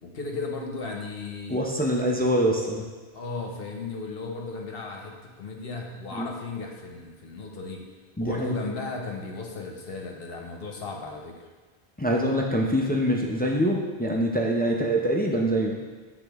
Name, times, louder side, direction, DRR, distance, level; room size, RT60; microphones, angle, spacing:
voice 1, 0.0-1.6 3.1-7.8 8.2-11.4, left 3 dB, 65° left, 1 dB, 1.0 m, -35 dB
voice 2, 1.5-2.9 6.1-6.3 8.2-8.6 12.0-15.8, equal, 15° left, -1 dB, 0.3 m, -24 dB
8.1 x 3.8 x 3.4 m, 1.4 s
omnidirectional pair, 1.1 m